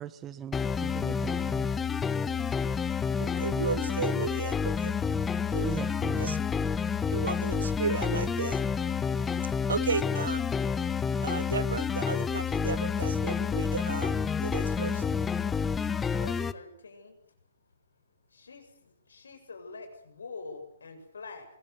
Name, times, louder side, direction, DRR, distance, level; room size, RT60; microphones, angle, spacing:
voice 1, 0.0-1.7 5.6-6.4, right 10 dB, 20° right, 1.0 m, -40 dB
sound 1, 0.5-16.5, left 6 dB, 10° left, 1.1 m, -29 dB
voice 2, 3.2-5.1 5.5-5.7 6.2-6.4 7.1-8.6 9.7-10.4 11.2-14.1 14.4-15.0, right 5 dB, 70° right, 1.8 m, -34 dB
voice 3, 14.6-15.2 16.1-17.2 18.3-21.5, left 4 dB, 70° left, 7.3 m, -46 dB
24.0 x 22.5 x 8.2 m
figure-of-eight pair, 125°, 0 cm